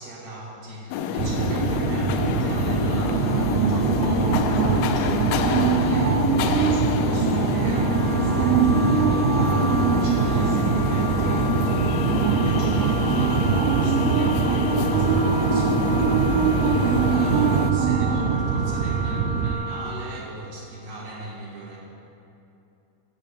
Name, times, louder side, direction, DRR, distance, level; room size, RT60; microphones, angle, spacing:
voice 1, 0.0-21.8, right 2 dB, 55° right, -6 dB, 3.9 m, -37 dB
sound 1, 0.9-17.7, left 7 dB, 80° left, 2.5 m, -27 dB
sound 2, 1.2-19.5, right 6 dB, 80° right, 2.5 m, -22 dB
Wind instrument woodwind instrument, 7.5-20.0, equal, 25° right, 2.1 m, -34 dB
8.5 x 8.5 x 8.6 m, 2.8 s
omnidirectional pair, 4.8 m